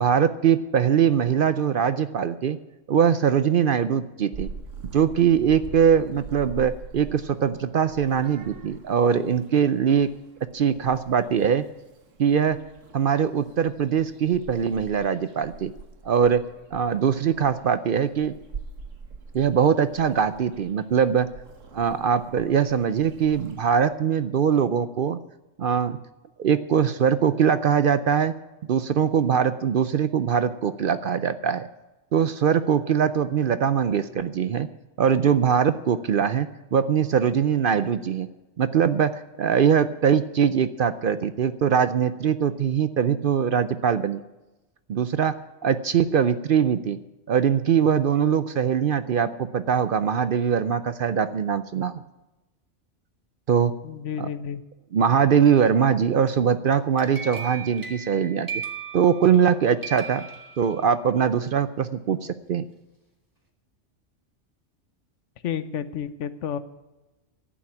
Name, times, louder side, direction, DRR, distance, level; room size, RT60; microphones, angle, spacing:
voice 1, 0.0-2.6 2.9-4.5 4.9-10.1 10.5-11.6 12.2-12.6 12.9-15.7 16.0-16.4 16.7-18.3 19.3-21.3 21.7-25.2 25.6-26.0 26.4-28.3 28.7-31.7 32.1-34.7 35.0-38.3 38.6-44.2 44.9-45.3 45.6-47.0 47.3-51.9 53.5-53.7 54.2-54.3 54.9-58.5 58.9-60.3 60.6-62.7, right 7 dB, 55° right, 13 dB, 0.6 m, -22 dB
Purr / Meow, 4.3-23.8, right 5 dB, 90° right, 1.6 m, -44 dB
voice 2, 53.8-54.6 65.4-66.6, left 8 dB, 75° left, 14 dB, 1.1 m, -31 dB
sound 1, 56.7-59.5 59.8-61.1, right 6 dB, 15° right, 1.8 m, -37 dB
11.0 x 8.7 x 8.7 m, 1.1 s
omnidirectional pair, 1.3 m